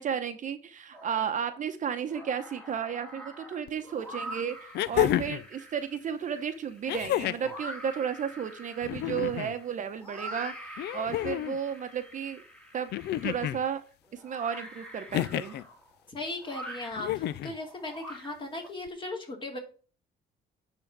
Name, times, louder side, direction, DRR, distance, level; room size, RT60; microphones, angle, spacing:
voice 1, 0.0-12.4 12.7-12.9 13.2-13.8 14.1-15.6, right 8 dB, 45° right, 9 dB, 0.8 m, -33 dB
sound 1, 0.9-1.6 2.0-18.7, right 1 dB, 5° left, 1.8 m, -45 dB
sound 2, 3.7-3.8 4.7-5.5 6.9-7.5 8.8-9.5 10.8-11.6 12.9-13.6 15.1-15.6 17.0-17.6 18.9-19.0, left 13 dB, 75° left, 0.5 m, -30 dB
voice 2, 16.1-19.6, left 2 dB, 30° left, 2 dB, 2.6 m, -37 dB
10.0 x 3.8 x 5.9 m, 0.40 s
cardioid pair, 115°, 18 cm